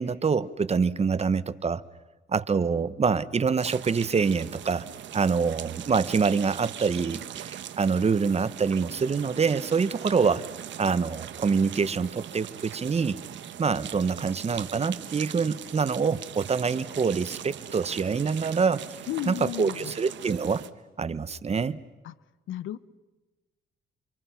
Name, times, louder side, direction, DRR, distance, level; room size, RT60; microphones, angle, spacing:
voice 1, 0.0-1.8 2.3-4.9 5.1-10.5 10.8-13.2 13.6-18.8 19.2-20.6 21.0-21.8, right 5 dB, 30° right, 16 dB, 1.0 m, -25 dB
sound 1, 3.6-20.7, right 10 dB, 70° right, 1.3 m, -40 dB
voice 2, 19.1-19.9 22.0-22.1 22.5-22.8, left 12 dB, 80° left, 17 dB, 0.9 m, -33 dB
29.5 x 26.0 x 5.8 m, 1.2 s
cardioid pair, 90°, 20 cm